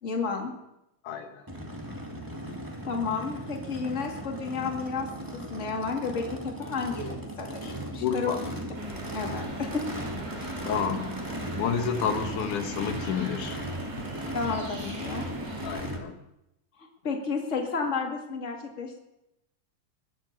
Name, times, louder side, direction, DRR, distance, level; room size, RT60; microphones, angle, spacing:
voice 1, 0.0-0.5 2.8-8.5 9.1-9.9 10.4-10.5 14.3-15.3 17.0-19.0, left 5 dB, 25° left, 1 dB, 2.2 m, -32 dB
voice 2, 1.0-1.5 8.0-8.4 10.7-11.2 11.6-13.6 15.6-16.2, left 7 dB, 80° left, 6 dB, 2.6 m, -30 dB
Race car auto racing / Idling / Accelerating revving vroom, 1.5-16.0, right 1 dB, 10° right, 1.2 m, -37 dB
sound 1, 8.7-15.9, right 1 dB, 55° right, 5.1 m, -41 dB
21.5 x 7.9 x 6.9 m, 0.88 s
omnidirectional pair, 3.6 m